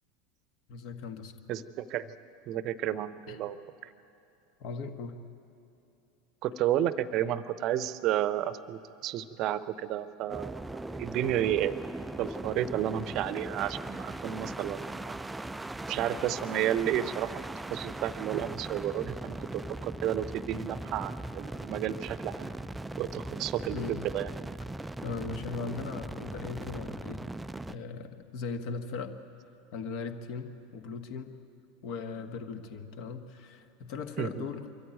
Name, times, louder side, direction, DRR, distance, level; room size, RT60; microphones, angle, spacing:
voice 1, 0.7-1.4 3.3-3.4 4.6-5.2 23.7-24.0 25.0-27.2 27.7-29.1 29.7-31.3 31.8-34.7, left 4 dB, 50° left, 8 dB, 1.4 m, -38 dB
voice 2, 1.5-2.1 2.5-3.6 3.8-3.9 6.4-10.6 11.0-11.7 12.2-15.2 15.9-17.4 17.7-22.5 23.0-24.3 34.2-34.4, right 11 dB, 45° right, 16 dB, 0.7 m, -31 dB
sound 1, 10.3-27.8, right 2 dB, 10° right, 0.4 m, -39 dB
24.5 x 14.0 x 9.2 m, 2.9 s
figure-of-eight pair, 80°, 0 cm